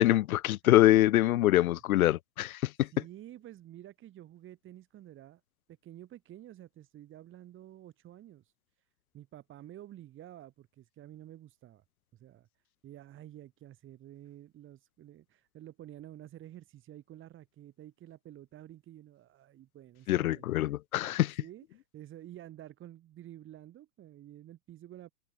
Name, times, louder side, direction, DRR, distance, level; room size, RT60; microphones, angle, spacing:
voice 1, 0.0-2.9 20.1-21.3, left 14 dB, 70° left, 1.0 m, -24 dB
voice 2, 2.9-5.4 5.7-8.5 9.1-11.8 12.1-12.5 12.8-25.1, right 13 dB, 25° right, 4.4 m, -50 dB
hypercardioid pair, 135°, 44 cm